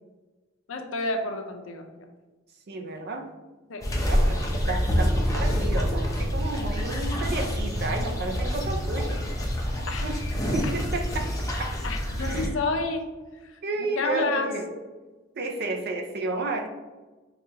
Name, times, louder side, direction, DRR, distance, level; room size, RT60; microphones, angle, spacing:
voice 1, 0.7-1.8 3.7-4.0 9.9-10.1 11.8-13.1 13.8-14.5, left 3 dB, 85° left, 4 dB, 0.5 m, -29 dB
voice 2, 2.7-3.3 4.0-4.4 4.7-9.2 10.0-10.2 10.5-11.3 11.6-11.7 12.2-12.5 13.6-14.7 15.3-16.7, right 3 dB, 55° right, 4 dB, 0.5 m, -32 dB
sound 1, 3.8-12.5, equal, 15° left, 0.5 m, -27 dB
4.7 x 2.3 x 2.8 m, 1.2 s
head